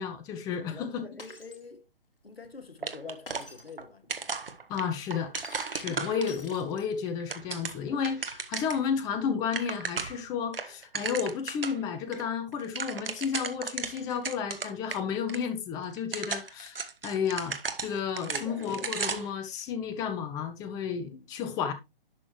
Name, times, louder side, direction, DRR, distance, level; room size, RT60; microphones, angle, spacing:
voice 1, 0.0-1.1 4.7-5.3 5.7-21.7, left 7 dB, 15° left, 0.8 m, -32 dB
voice 2, 0.7-1.9 2.2-4.3 5.8-6.0 18.2-18.6 21.1-21.2, left 3 dB, 85° left, 1.7 m, -45 dB
Shatter, 1.2-1.6 3.3-3.7 5.4-7.1, left 3 dB, 70° left, 2.5 m, -46 dB
sound 1, 2.8-3.8 4.1-6.6 7.1-8.9 9.2-9.3 9.5-10.2 10.5-11.8 12.1-12.2 12.5-15.0 15.3-15.4 15.9-19.4, right 5 dB, 70° right, 1.4 m, -35 dB
11.5 x 6.2 x 3.1 m
figure-of-eight pair, 135°, 29 cm